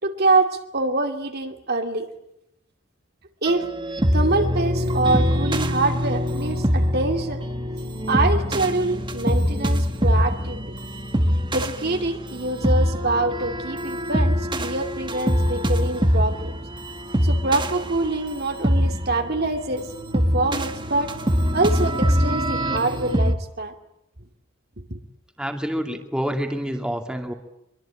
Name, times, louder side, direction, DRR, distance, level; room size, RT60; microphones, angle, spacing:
voice 1, 0.0-2.1 3.4-3.7 4.1-7.4 8.1-10.7 11.5-16.5 17.2-19.9 20.1-21.1 21.5-23.7 24.9-25.0, right 2 dB, 50° right, 5 dB, 2.5 m, -25 dB
sound 1, 3.5-23.3, equal, 25° right, 1.5 m, -24 dB
voice 2, 25.4-27.3, equal, 5° right, 3 dB, 2.5 m, -27 dB
24.0 x 23.5 x 8.9 m, 0.81 s
head